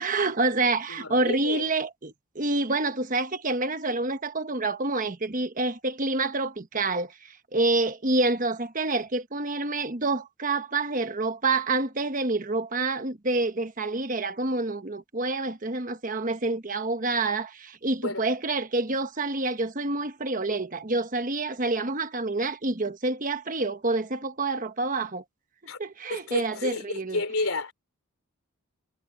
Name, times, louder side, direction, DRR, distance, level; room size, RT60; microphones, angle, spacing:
voice 1, 0.0-25.2 25.8-27.2, right 3 dB, 35° right, 1.2 m, -27 dB
voice 2, 0.9-1.7 18.0-18.3 25.7-25.8 26.1-27.7, left 3 dB, 75° left, 3.4 m, -31 dB
head